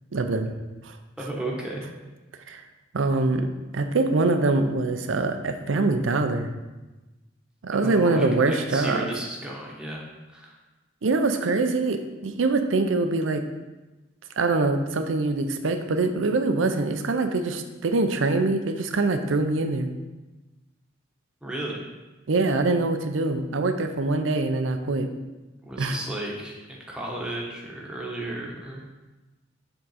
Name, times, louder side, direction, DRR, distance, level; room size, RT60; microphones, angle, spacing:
voice 1, 0.1-0.5 0.8-1.0 2.5-2.6 2.9-3.5 3.7-6.5 7.6-9.1 11.0-13.4 14.4-19.9 22.3-25.1 25.8-26.0, right 3 dB, 85° right, 7 dB, 0.5 m, -24 dB
voice 2, 1.2-1.8 7.8-10.0 10.3-10.6 21.4-21.9 25.6-28.8, right 1 dB, 5° right, -3 dB, 1.0 m, -33 dB
6.9 x 3.7 x 4.1 m, 1.1 s
head